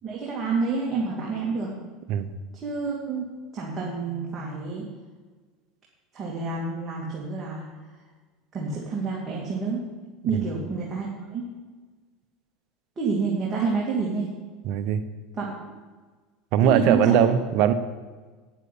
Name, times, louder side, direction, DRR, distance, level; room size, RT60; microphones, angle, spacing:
voice 1, 0.0-1.7 2.6-3.3 3.5-4.9 6.1-7.7 8.5-9.9 10.2-11.5 13.0-14.3 15.3-15.5 16.6-17.3, right 4 dB, 30° right, -4 dB, 2.5 m, -28 dB
voice 2, 14.6-15.0 16.5-17.7, right 9 dB, 60° right, 11 dB, 0.9 m, -20 dB
9.7 x 7.5 x 8.4 m, 1.4 s
supercardioid pair, 110°, 0 cm